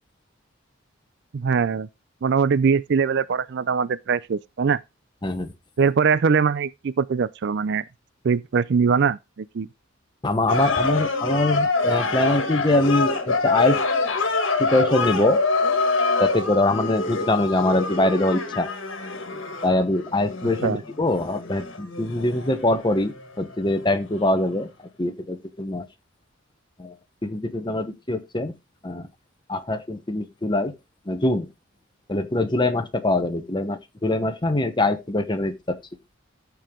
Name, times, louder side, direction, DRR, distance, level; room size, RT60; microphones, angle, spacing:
voice 1, 1.3-1.9 2.2-4.8 5.8-7.8 8.2-9.7 20.6-20.8, right 6 dB, 55° right, 0.4 m, -22 dB
voice 2, 5.2-5.5 10.2-13.8 14.6-15.4 16.2-18.7 19.6-24.7 25.0-25.8 26.8-26.9 27.2-28.5 28.8-29.1 29.5-30.7 31.1-31.5 32.1-35.8, left 2 dB, 20° left, 1.0 m, -23 dB
sound 1, 10.5-23.9 24.1-24.3, left 3 dB, 65° left, 1.6 m, -25 dB
14.0 x 4.7 x 3.7 m
head